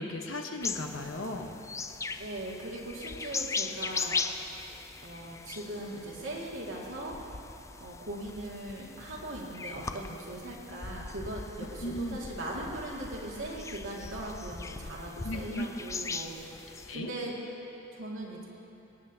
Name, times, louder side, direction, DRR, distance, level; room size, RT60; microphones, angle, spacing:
voice 1, 0.0-1.6 11.8-12.2 15.2-15.7 16.9-17.1, left 1 dB, 80° left, 3 dB, 1.1 m, -36 dB
sound 1, 0.6-16.9, left 4 dB, 15° left, 0.3 m, -39 dB
voice 2, 2.2-4.2 5.0-7.2 7.8-16.3 16.9-17.3 17.9-18.4, right 1 dB, 85° right, -4 dB, 2.1 m, -39 dB
24.0 x 9.6 x 2.8 m, 2.9 s
head